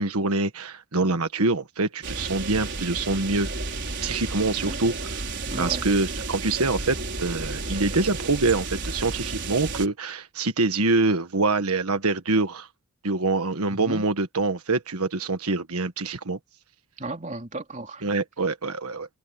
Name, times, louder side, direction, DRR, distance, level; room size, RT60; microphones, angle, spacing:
voice 1, 0.0-3.5 4.0-5.2 5.6-12.7 13.0-16.4 18.0-19.1, right 3 dB, 90° right, 1.5 m, -25 dB
sound 1, 2.0-9.9, right 3 dB, 50° right, 5.0 m, -32 dB
voice 2, 5.5-5.8 13.7-14.1 17.0-18.0, right 2 dB, 35° right, 3.2 m, -34 dB
head